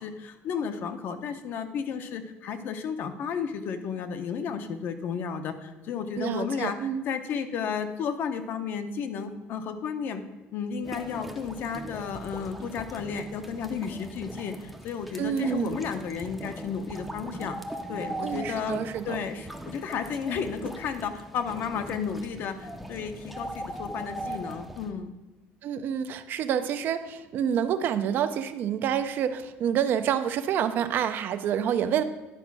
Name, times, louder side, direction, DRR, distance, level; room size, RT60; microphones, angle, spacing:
voice 1, 0.0-10.2 10.5-17.6 17.9-18.8 19.1-25.1 31.8-32.0, left 6 dB, 50° left, 8 dB, 0.7 m, -33 dB
voice 2, 6.2-7.0 15.2-15.8 18.2-19.2 25.6-32.0, right 9 dB, 45° right, 10 dB, 0.5 m, -28 dB
sound 1, 10.8-24.9, right 1 dB, ahead, 0.6 m, -40 dB
10.5 x 5.0 x 6.0 m, 1.1 s
cardioid pair, 170°, 5 cm